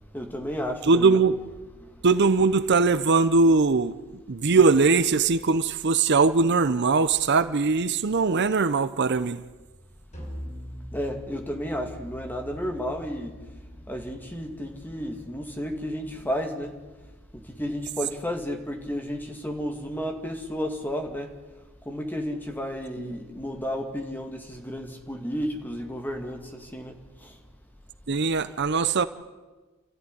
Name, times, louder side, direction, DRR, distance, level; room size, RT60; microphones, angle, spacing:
voice 1, 0.1-1.2 1.8-1.9 10.9-13.3 13.9-16.7 17.3-21.3 21.9-26.9 27.2-27.3, equal, 10° left, 2.2 m, -32 dB
voice 2, 0.8-1.4 2.0-4.0 4.3-9.4 23.0-23.1 28.1-29.0, right 4 dB, 50° right, 0.7 m, -21 dB
sound 1, 10.1-15.5, equal, 35° left, 6.1 m, -43 dB
30.0 x 13.5 x 9.9 m
head